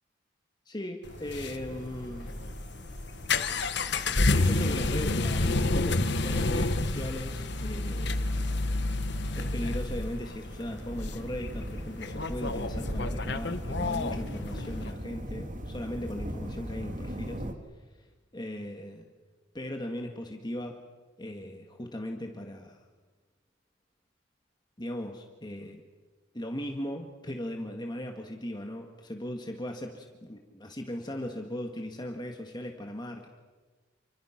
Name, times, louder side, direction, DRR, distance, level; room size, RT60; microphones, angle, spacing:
voice 1, 0.7-2.3 4.3-8.3 9.3-17.4 18.0-18.1 18.3-19.1 19.5-20.8 21.2-22.8 24.8-25.8 26.3-33.3, left 1 dB, 25° left, 3 dB, 1.9 m, -38 dB
sound 1, 1.0-14.9, left 2 dB, 65° left, 1.3 m, -30 dB
sound 2, 1.1-17.5, equal, 45° right, 2.2 m, -40 dB
29.5 x 26.0 x 6.0 m, 1.3 s
head